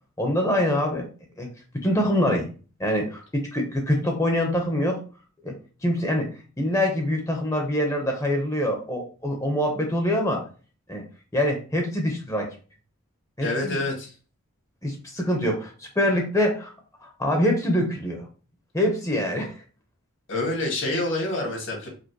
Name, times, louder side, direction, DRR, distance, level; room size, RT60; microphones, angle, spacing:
voice 1, 0.2-1.1 1.4-1.5 1.8-2.5 2.8-5.0 5.4-5.5 5.8-6.3 6.6-10.4 10.9-11.0 11.3-12.5 13.4-13.8 14.8-16.7 17.0-18.3 18.7-19.5, left 1 dB, 15° left, 1 dB, 0.8 m, -24 dB
voice 2, 13.4-14.1 20.3-21.9, left 2 dB, 60° left, 0 dB, 1.8 m, -27 dB
4.9 x 2.1 x 4.6 m, 0.37 s
head